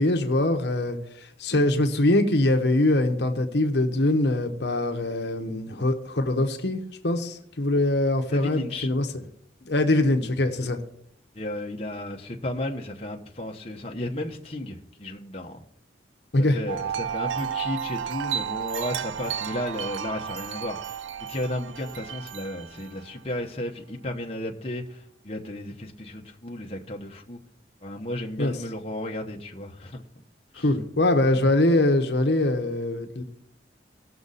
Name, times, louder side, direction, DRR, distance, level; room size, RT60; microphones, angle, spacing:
voice 1, 0.0-9.1 9.6-10.8 16.3-16.6 28.4-28.5 30.6-33.2, left 1 dB, 65° left, 5 dB, 1.0 m, -23 dB
voice 2, 8.3-8.9 11.3-15.6 16.4-21.0 21.3-27.4 27.8-30.0 30.5-30.7, left 1 dB, 30° left, 1 dB, 1.0 m, -34 dB
Wind chime, 16.7-23.2, right 8 dB, 85° right, 0.4 m, -32 dB
18.0 x 6.4 x 4.1 m, 0.69 s
head